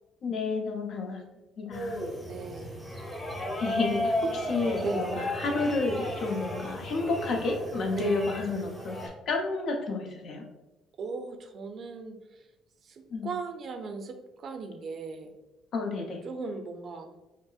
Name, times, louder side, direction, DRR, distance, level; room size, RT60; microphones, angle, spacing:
voice 1, 0.2-1.2 1.6-2.0 3.6-10.4 13.1-13.3 15.7-16.2, left 3 dB, 60° left, 2 dB, 0.7 m, -30 dB
sound 1, 1.7-9.1, equal, 15° left, 0.9 m, -34 dB
voice 2, 2.2-2.8 4.8-5.1 7.9-8.2 11.0-12.5 12.8-15.3 16.2-17.1, right 4 dB, 50° right, 5 dB, 0.5 m, -37 dB
5.2 x 2.0 x 2.4 m, 1.0 s
supercardioid pair, 70°, 0 cm